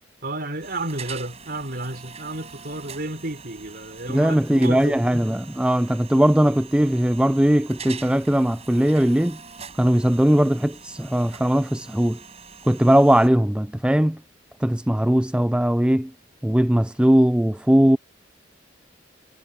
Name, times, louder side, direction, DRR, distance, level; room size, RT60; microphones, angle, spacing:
voice 1, 0.2-5.2, right 2 dB, 55° right, 4.8 m, -32 dB
sound 1, 0.6-13.3, right 6 dB, 35° right, 7.1 m, -43 dB
voice 2, 4.1-9.4 9.8-12.2 12.7-14.2 14.6-16.1 16.4-18.0, equal, 5° right, 0.4 m, -19 dB
head